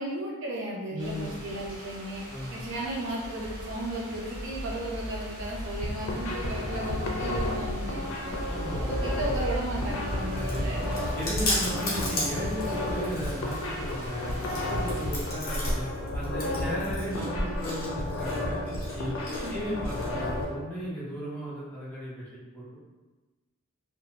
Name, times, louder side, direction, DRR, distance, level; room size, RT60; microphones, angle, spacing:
voice 1, 0.0-2.2 2.5-8.4 8.8-10.9 19.4-19.7, right 1 dB, 60° right, -5 dB, 0.6 m, -35 dB
voice 2, 0.9-1.4 2.3-2.6 8.5-8.9 10.3-10.8 11.1-15.8 16.1-18.6 18.9-19.2 19.5-22.3 22.5-22.8, equal, 10° left, -9 dB, 0.6 m, -36 dB
sound 1, 1.0-15.3, equal, 45° right, 1.0 m, -37 dB
sound 2, 5.8-20.4, left 1 dB, 75° left, 0.5 m, -33 dB
Chewing mastication, 9.8-20.4, left 1 dB, 45° left, 0.9 m, -35 dB
2.6 x 2.2 x 2.9 m, 1.2 s
head